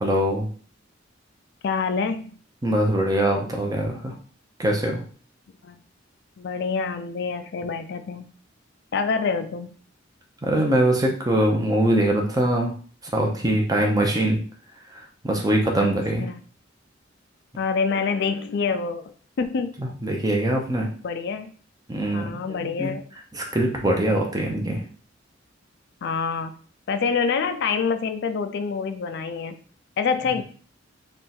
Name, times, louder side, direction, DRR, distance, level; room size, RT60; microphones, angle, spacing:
voice 1, 0.0-0.5 2.6-4.1 4.6-5.0 10.4-12.7 13.1-14.4 15.2-16.3 19.8-20.9 21.9-22.9 23.3-24.8, right 1 dB, 20° right, 1 dB, 0.8 m, -22 dB
voice 2, 1.6-2.3 5.6-5.8 6.4-8.3 8.9-9.7 15.8-16.4 17.6-19.8 21.0-21.5 22.1-23.0 26.0-26.5 26.9-29.6 30.0-30.4, left 5 dB, 60° left, 8 dB, 0.4 m, -26 dB
3.5 x 2.4 x 4.3 m, 0.43 s
head